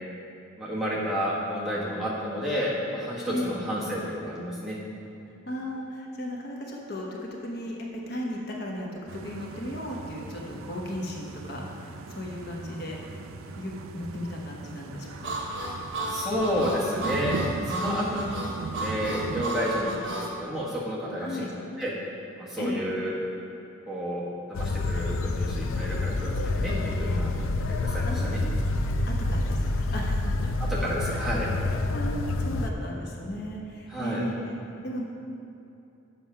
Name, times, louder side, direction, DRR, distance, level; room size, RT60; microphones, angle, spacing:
voice 1, 0.6-4.8 16.1-18.3 18.8-21.5 21.8-21.9 22.4-23.1 23.9-24.2 24.5-27.3 27.8-28.4 30.6-31.5 33.9-34.2, equal, ahead, -7 dB, 1.2 m, -30 dB
voice 2, 3.3-3.6 5.4-13.0 13.6-15.3 17.8-18.2 21.2-21.5 22.6-22.8 28.0-28.5 29.1-30.5 31.0-34.5 34.8-35.0, left 1 dB, 50° left, -2 dB, 1.0 m, -36 dB
sound 1, 9.1-19.4, right 3 dB, 85° right, 0.4 m, -38 dB
Harmonica, 15.2-20.3, right 2 dB, 60° right, 1.4 m, -33 dB
sound 2, 24.5-32.7, left 2 dB, 75° left, 0.4 m, -28 dB
7.6 x 5.9 x 5.5 m, 2.8 s
head